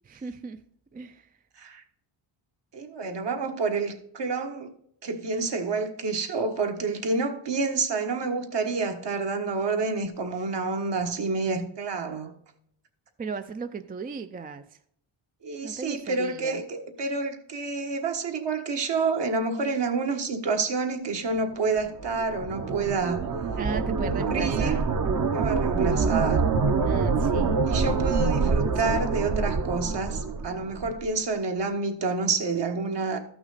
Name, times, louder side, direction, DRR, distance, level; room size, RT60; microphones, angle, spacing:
voice 1, 0.1-0.6 0.9-1.3 13.2-14.6 15.6-16.6 23.6-24.8 26.8-27.9 28.3-29.0, right 4 dB, 20° right, 0.4 m, -37 dB
voice 2, 2.7-4.7 5.0-12.3 15.4-23.2 24.2-24.7 25.3-26.5 27.7-33.2, right 4 dB, 55° right, 1.5 m, -28 dB
sound 1, 21.8-31.0, right 4 dB, 40° right, 0.9 m, -26 dB
13.0 x 6.0 x 4.1 m
cardioid pair, 100°, 50 cm